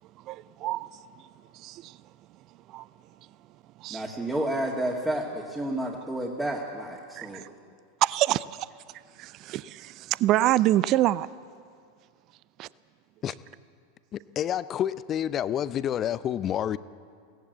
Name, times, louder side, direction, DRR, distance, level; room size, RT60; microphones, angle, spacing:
voice 1, 0.2-1.0 1.5-2.0 2.7-2.9 3.8-4.0 7.2-7.5 8.0-8.7 9.2-11.3 12.6-12.7, right 15 dB, 40° right, 0.5 m, -26 dB
voice 2, 3.9-7.4, right 1 dB, 10° right, 2.3 m, -30 dB
voice 3, 14.1-16.8, left 10 dB, 30° left, 0.6 m, -29 dB
22.0 x 17.5 x 8.2 m
figure-of-eight pair, 85°, 0 cm